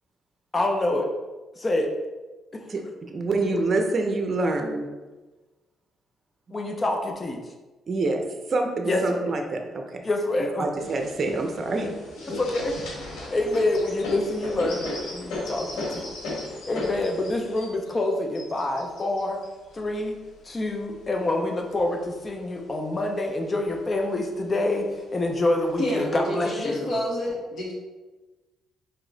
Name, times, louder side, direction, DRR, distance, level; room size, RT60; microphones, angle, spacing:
voice 1, 0.5-1.1 1.6-1.9 2.5-2.6 6.5-7.4 8.8-9.3 10.0-10.7 12.2-12.8 13.3-16.1 16.7-19.4 19.7-20.2 20.4-26.9, left 2 dB, 30° left, 3 dB, 0.6 m, -26 dB
voice 2, 3.1-4.9 7.9-8.2 8.5-9.8 10.6-11.9 12.3-12.4, right 3 dB, 45° right, 4 dB, 0.6 m, -26 dB
sound 1, 10.8-21.1 21.7-22.7 23.1-23.2 23.4-24.1 24.9-25.0 25.6-26.1, left 2 dB, 85° left, 1.3 m, -36 dB
voice 3, 25.8-27.7, left 1 dB, 55° left, -4 dB, 1.4 m, -28 dB
4.3 x 3.0 x 3.8 m, 1.2 s
cardioid pair, 90°, 0 cm